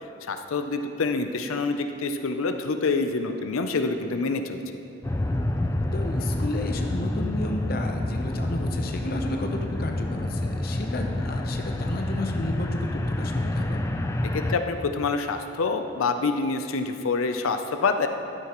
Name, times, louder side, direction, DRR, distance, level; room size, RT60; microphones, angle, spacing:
voice 1, 0.3-4.6 14.3-18.1, left 4 dB, 85° left, 7 dB, 0.5 m, -26 dB
sound 1, 5.0-14.6, left 1 dB, 15° left, 0.3 m, -28 dB
voice 2, 5.9-13.9, left 1 dB, 45° left, 3 dB, 0.8 m, -32 dB
12.0 x 9.5 x 3.0 m, 2.8 s
head